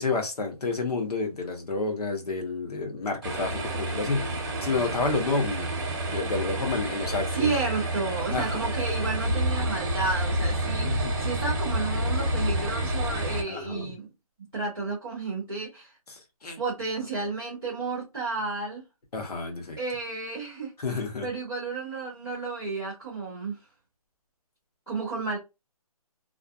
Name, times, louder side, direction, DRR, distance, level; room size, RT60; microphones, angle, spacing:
voice 1, 0.0-4.3 4.6-5.7 6.0-7.5 8.3-8.7 10.8-11.3 13.5-13.9 16.1-16.6 19.1-19.8 20.8-21.3, left 3 dB, 90° left, 1.1 m, -30 dB
sound 1, 3.2-13.4, right 1 dB, 30° right, 0.7 m, -29 dB
voice 2, 7.3-14.1 14.5-15.9 16.6-18.8 19.8-23.6 24.9-25.4, right 4 dB, ahead, 0.3 m, -32 dB
2.5 x 2.4 x 2.3 m
hypercardioid pair, 170°, 19 cm